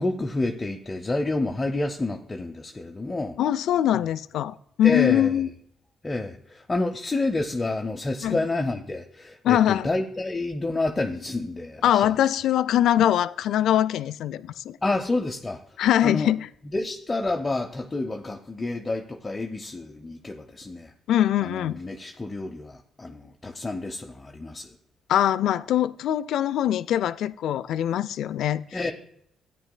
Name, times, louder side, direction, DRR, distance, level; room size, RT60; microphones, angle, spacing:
voice 1, 0.0-3.4 4.8-5.4 6.0-12.1 14.8-15.6 16.0-16.3 16.7-20.9 21.4-24.7 28.7-28.9, left 2 dB, 20° left, 0.6 m, -29 dB
voice 2, 3.4-5.5 8.2-8.4 9.4-9.9 11.8-14.8 15.8-16.5 21.1-21.8 25.1-28.8, left 11 dB, 75° left, 0.3 m, -22 dB
13.5 x 9.2 x 2.2 m
cardioid pair, 90°, 0 cm